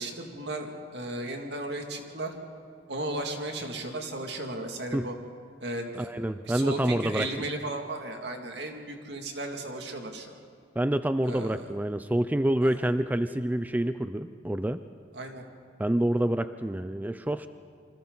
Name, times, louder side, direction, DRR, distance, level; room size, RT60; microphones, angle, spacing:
voice 1, 0.0-2.3 2.9-5.1 5.6-6.1 6.4-10.3 11.2-11.7 12.6-12.9 15.1-15.4, right 2 dB, 70° right, 3 dB, 2.3 m, -35 dB
voice 2, 6.0-7.3 10.8-14.8 15.8-17.5, right 1 dB, 10° right, 11 dB, 0.4 m, -27 dB
28.0 x 25.0 x 4.0 m, 2.3 s
head